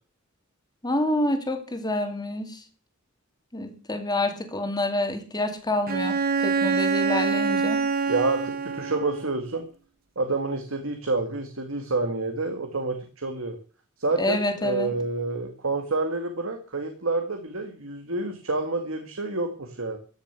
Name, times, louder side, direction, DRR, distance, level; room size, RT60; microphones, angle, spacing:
voice 1, 0.8-2.6 3.5-6.2 6.4-7.8 14.2-14.9, left 1 dB, 20° left, 6 dB, 2.4 m, -27 dB
Bowed string instrument, 5.9-9.4, right 5 dB, 45° right, 1.0 m, -25 dB
voice 2, 8.1-9.6 10.2-13.6 14.0-20.0, right 3 dB, 70° right, 5 dB, 1.9 m, -28 dB
14.5 x 6.7 x 8.3 m, 0.39 s
head